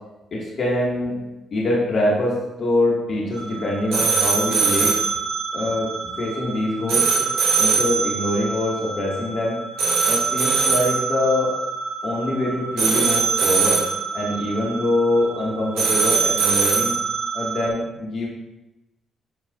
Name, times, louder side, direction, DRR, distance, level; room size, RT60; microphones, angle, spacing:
voice 1, 0.3-1.2 1.5-5.0 5.5-5.9 6.2-7.3 7.6-9.6 10.0-11.5 12.0-13.8 14.1-16.9 17.3-18.3, left 1 dB, 55° left, -5 dB, 2.4 m, -24 dB
sound 1, 3.3-17.7, right 5 dB, 85° right, 2.7 m, -23 dB
12.5 x 5.1 x 2.8 m, 0.98 s
supercardioid pair, 55°, 0 cm